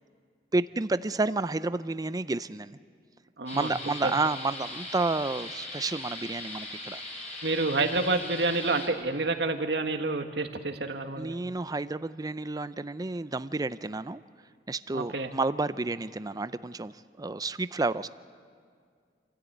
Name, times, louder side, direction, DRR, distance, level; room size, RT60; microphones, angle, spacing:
voice 1, 0.5-2.8 3.5-7.0 11.2-14.2 14.7-18.1, right 3 dB, 20° right, 14 dB, 0.5 m, -30 dB
voice 2, 3.4-3.7 4.0-4.1 7.4-11.4 14.9-15.3, right 3 dB, 70° right, 6 dB, 1.6 m, -28 dB
sound 1, 3.5-8.9, left 2 dB, 40° left, 4.7 m, -40 dB
27.5 x 13.5 x 9.2 m, 2.1 s
head